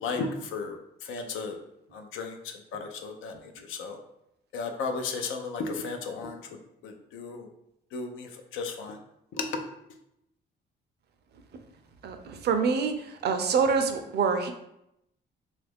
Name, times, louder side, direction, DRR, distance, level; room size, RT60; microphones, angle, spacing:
voice 1, 0.0-0.8 1.1-1.6 1.9-2.4 2.7-3.3 3.7-4.0 4.5-6.4 6.8-7.5 7.9-9.0 9.4-9.5, left 4 dB, 85° left, 5 dB, 0.5 m, -34 dB
voice 2, 12.0-14.5, right 5 dB, 55° right, 7 dB, 0.5 m, -26 dB
3.0 x 2.4 x 3.4 m, 0.82 s
cardioid pair, 90°, 20 cm